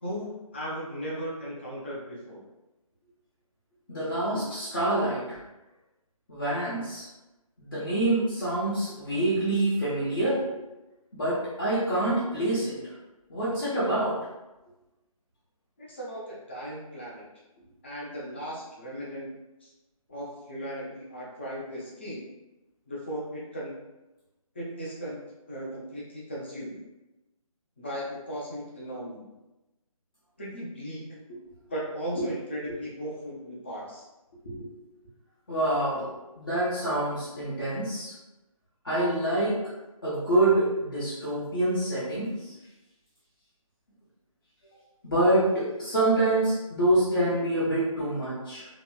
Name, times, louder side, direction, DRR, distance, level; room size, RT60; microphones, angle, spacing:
voice 1, 0.0-2.4 15.8-17.3 17.8-19.3 19.6-19.7 20.1-22.2 22.9-23.8 24.6-25.2 25.5-26.7 27.8-29.3 30.4-31.2 31.7-34.0, equal, 20° left, -5 dB, 0.4 m, -37 dB
voice 2, 3.9-5.4 6.3-7.1 7.6-10.4 11.1-12.8 13.3-14.1 31.3-31.4 32.1-32.2 34.4-34.7 35.5-38.1 38.8-39.6 40.0-42.5 45.0-48.7, right 1 dB, 35° left, -11 dB, 0.9 m, -26 dB
2.9 x 2.7 x 2.2 m, 1.0 s
figure-of-eight pair, 165°, 19 cm